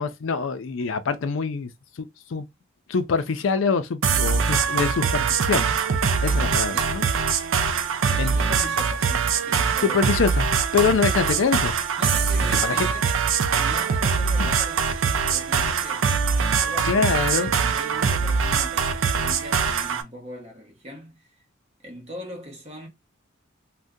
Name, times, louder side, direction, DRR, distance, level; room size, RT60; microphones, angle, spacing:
voice 1, 0.0-1.7 2.0-2.5 2.9-5.7 6.2-7.0 7.7-7.9 8.2-8.4 9.8-11.8 12.6-12.9 14.4-14.5 16.8-17.5, left 5 dB, 70° left, 0.4 m, -25 dB
sound 1, 4.0-20.0, right 6 dB, 75° right, 0.5 m, -23 dB
voice 2, 6.2-7.0 8.0-10.0 12.0-16.1 16.6-21.3 21.8-22.9, equal, 30° right, 1.0 m, -40 dB
2.7 x 2.2 x 3.5 m
head